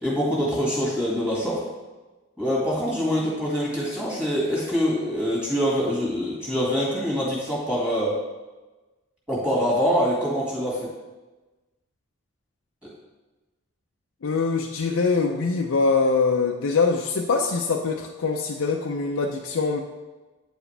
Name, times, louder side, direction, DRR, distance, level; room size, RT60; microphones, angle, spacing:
voice 1, 0.0-1.6 2.4-8.1 9.3-10.9, equal, 5° right, -6 dB, 2.0 m, -24 dB
voice 2, 14.2-19.8, left 4 dB, 75° left, 2 dB, 0.5 m, -23 dB
8.7 x 4.9 x 3.3 m, 1.2 s
head